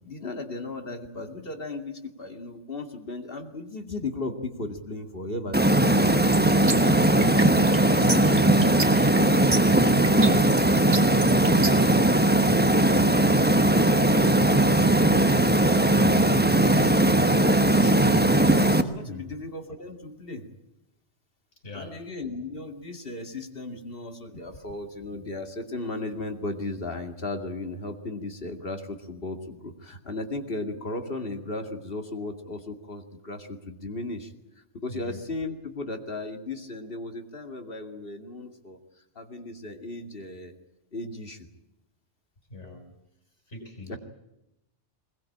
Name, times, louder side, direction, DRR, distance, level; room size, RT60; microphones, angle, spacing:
voice 1, 0.0-5.6 7.4-9.8 10.0-10.6 10.9-15.4 15.8-16.7 17.0-18.1 18.8-20.5 21.7-38.8 39.2-40.5 40.9-41.5 43.9-44.0, left 2 dB, 50° left, 5 dB, 2.6 m, -36 dB
sound 1, 5.5-18.8, right 1 dB, 10° right, 1.1 m, -19 dB
sound 2, 6.3-11.9, right 3 dB, 40° right, 1.9 m, -31 dB
voice 2, 21.6-22.0 34.9-35.2 42.5-42.9 43.5-44.0, left 2 dB, 80° left, 2 dB, 5.6 m, -41 dB
21.5 x 21.0 x 8.7 m, 0.88 s
omnidirectional pair, 1.2 m